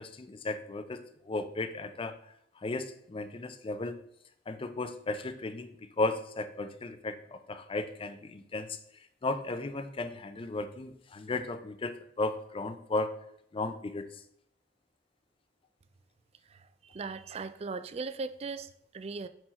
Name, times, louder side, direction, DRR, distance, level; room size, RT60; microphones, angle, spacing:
voice 1, 0.0-2.2 2.6-4.0 4.5-8.8 9.2-13.1 13.5-14.1, left 2 dB, 30° left, 9 dB, 0.5 m, -35 dB
voice 2, 16.5-19.3, right 4 dB, 35° right, 12 dB, 0.3 m, -39 dB
5.5 x 4.6 x 4.2 m, 0.74 s
head